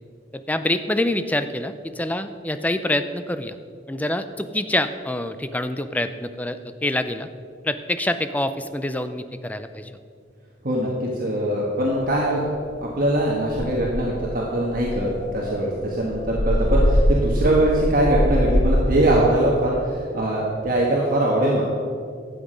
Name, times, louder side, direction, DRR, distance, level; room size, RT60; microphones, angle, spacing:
voice 1, 0.3-3.6 3.9-7.3 7.6-9.9, left 1 dB, 10° left, 10 dB, 0.4 m, -26 dB
voice 2, 10.6-12.5 12.8-21.6, right 1 dB, 50° right, -3 dB, 1.4 m, -22 dB
sound 1, 12.0-12.1 12.5-12.8 13.1-13.2 13.5-14.2 14.7-18.9, equal, 40° left, 1.6 m, -22 dB
12.0 x 8.1 x 5.1 m, 2.3 s
head